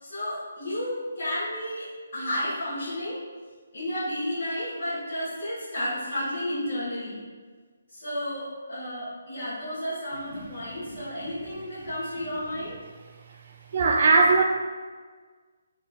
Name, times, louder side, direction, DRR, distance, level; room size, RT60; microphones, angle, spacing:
voice 1, 0.0-3.2 3.7-7.2 7.9-12.8, left 1 dB, 50° left, -15 dB, 1.2 m, -32 dB
voice 2, 13.7-14.4, right 3 dB, 45° right, 2 dB, 0.3 m, -18 dB
2.8 x 2.3 x 2.2 m, 1.5 s
figure-of-eight pair, 140°, 0 cm